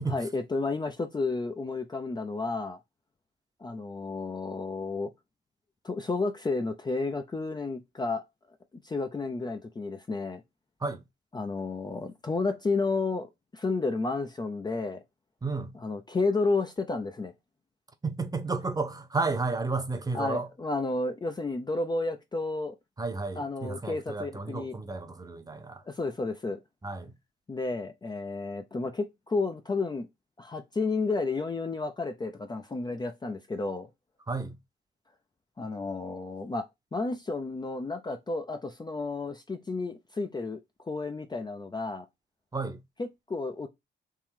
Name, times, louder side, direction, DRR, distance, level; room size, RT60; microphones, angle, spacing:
voice 1, 0.1-2.8 3.6-5.1 5.8-8.2 8.8-10.4 11.3-15.0 15.8-17.3 20.1-22.7 23.4-24.8 25.9-26.6 27.5-30.1 30.4-33.9 35.6-36.7 36.9-42.1 43.0-43.7, left 3 dB, 20° left, 0.5 m, -31 dB
voice 2, 15.4-15.7 18.0-20.5 23.0-25.8 26.8-27.1 34.3-34.6 42.5-42.8, right 3 dB, 20° right, 0.8 m, -32 dB
3.7 x 3.0 x 4.5 m
cardioid pair, 90°, 20 cm